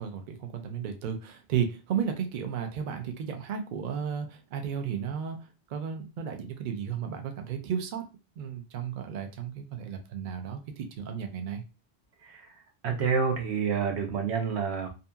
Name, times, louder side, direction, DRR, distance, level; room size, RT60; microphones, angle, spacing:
voice 1, 0.0-8.0 8.4-11.6, right 7 dB, 60° right, 5 dB, 0.6 m, -34 dB
voice 2, 12.8-14.9, right 6 dB, 85° right, 2 dB, 1.0 m, -28 dB
2.7 x 2.6 x 2.2 m, 0.30 s
omnidirectional pair, 1.1 m